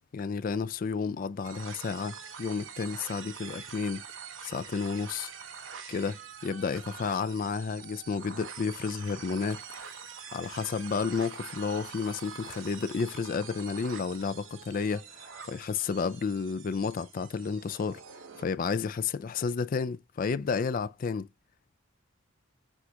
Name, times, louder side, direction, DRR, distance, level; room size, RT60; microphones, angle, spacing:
voice 1, 0.1-4.0 4.4-5.3 5.9-9.6 10.3-18.0 18.4-21.3, left 5 dB, 45° left, 0.3 m, -31 dB
sound 1, 1.4-18.4, right 7 dB, 65° right, 0.9 m, -45 dB
sound 2, 3.4-3.9 7.6-13.2, left 5 dB, 70° left, 1.3 m, -60 dB
6.1 x 2.4 x 2.8 m
head